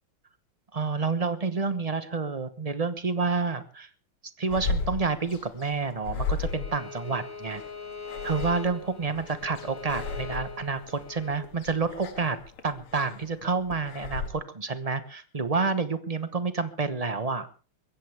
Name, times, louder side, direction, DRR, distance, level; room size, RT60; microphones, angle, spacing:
voice 1, 0.7-3.9 4.4-7.6 8.2-12.4 12.6-17.5, right 4 dB, 30° right, 11 dB, 0.7 m, -29 dB
sound 1, 4.5-14.3, left 4 dB, 85° left, 2.8 m, -36 dB
Bowed string instrument, 6.4-11.4, left 4 dB, 55° left, 4.0 m, -41 dB
22.5 x 16.0 x 3.5 m, 0.37 s
omnidirectional pair, 2.4 m